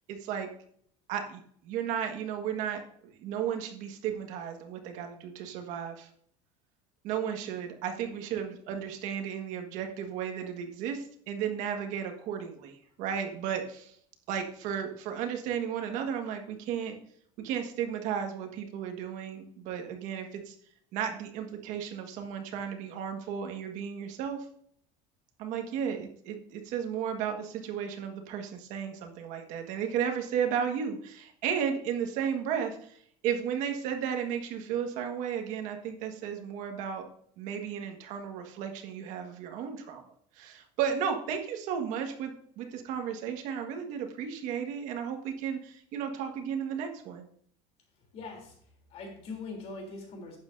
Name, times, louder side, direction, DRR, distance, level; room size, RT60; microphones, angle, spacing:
voice 1, 0.1-0.5 1.1-6.1 7.0-14.0 14.3-17.0 17.4-20.6 20.9-24.5 25.4-37.1 37.4-40.0 40.4-47.2, right 8 dB, 60° right, 4 dB, 1.7 m, -34 dB
voice 2, 48.0-50.4, left 3 dB, 45° left, 2 dB, 3.4 m, -42 dB
11.5 x 8.7 x 2.7 m, 0.62 s
cardioid pair, 155°, 15 cm